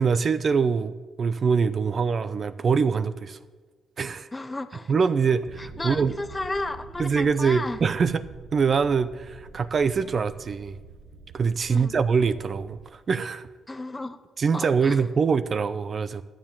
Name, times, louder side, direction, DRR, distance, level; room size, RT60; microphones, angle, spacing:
voice 1, 0.0-3.4 4.0-4.3 4.9-6.2 7.0-8.2 8.5-10.8 11.3-13.5 14.4-16.2, right 5 dB, 45° right, 13 dB, 0.5 m, -24 dB
voice 2, 4.3-4.9 5.6-7.8 11.7-12.0 13.7-14.2 14.5-15.0, left 2 dB, 20° left, 11 dB, 0.9 m, -33 dB
sound 1, 5.4-12.9, right 4 dB, 90° right, 1.1 m, -46 dB
12.5 x 7.3 x 7.2 m, 1.4 s
cardioid pair, 90°, 0 cm